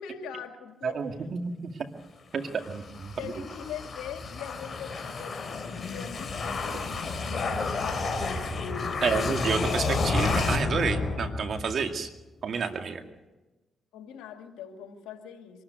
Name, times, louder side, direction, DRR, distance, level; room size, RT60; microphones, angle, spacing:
voice 1, 0.0-1.0 3.2-9.2 13.9-15.6, left 8 dB, 85° left, 5 dB, 2.3 m, -42 dB
voice 2, 0.8-1.7 2.3-3.3 9.0-12.1 12.4-13.0, right 5 dB, 60° right, 6 dB, 2.2 m, -30 dB
sound 1, 2.5-11.8, left 3 dB, 45° left, 3.3 m, -30 dB
24.5 x 13.5 x 9.4 m, 1.1 s
supercardioid pair, 55°, 0 cm